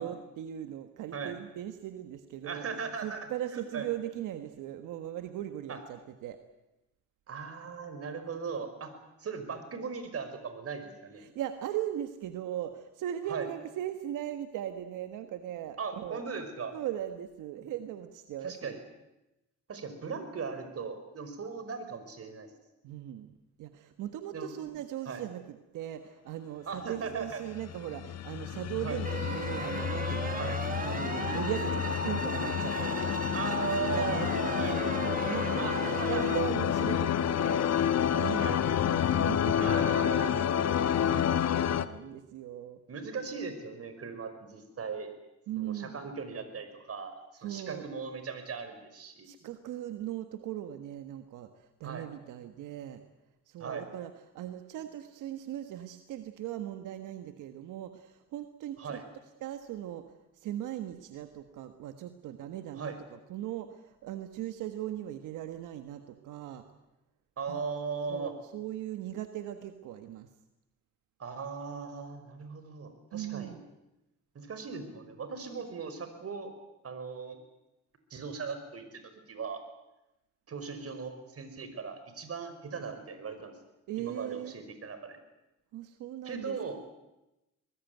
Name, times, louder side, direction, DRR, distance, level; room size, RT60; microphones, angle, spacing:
voice 1, 0.0-6.4 11.1-16.2 16.7-18.8 22.8-23.3 23.6-33.4 33.7-40.5 41.0-42.8 45.5-46.1 47.4-47.9 49.2-53.0 53.5-59.0 59.4-66.6 67.5-67.7 68.1-70.3 73.1-73.6 83.9-84.5 85.7-86.6, right 12 dB, 90° right, 8 dB, 1.6 m, -39 dB
voice 2, 2.4-3.2 3.7-3.8 5.7-5.8 7.3-8.9 9.2-11.2 13.3-13.4 15.8-16.7 18.4-18.8 19.7-22.5 24.3-24.5 25.1-25.2 26.7-27.4 28.8-29.0 30.4-30.6 33.3-34.2 34.6-34.7 35.6-36.2 38.4-38.6 39.6-40.4 42.9-45.1 45.6-49.3 51.8-52.0 53.6-53.9 58.8-59.0 62.7-63.0 67.4-68.3 71.2-73.6 74.4-76.5 76.8-77.4 78.1-79.0 79.3-79.6 80.5-83.5 84.0-85.2 86.2-86.8, right 5 dB, 50° right, 9 dB, 5.5 m, -38 dB
sound 1, 27.5-41.8, left 9 dB, 60° left, 1.4 m, -29 dB
sound 2, 29.0-36.4, right 4 dB, 30° right, 1.6 m, -36 dB
24.0 x 20.0 x 9.4 m, 0.95 s
cardioid pair, 90°, 30 cm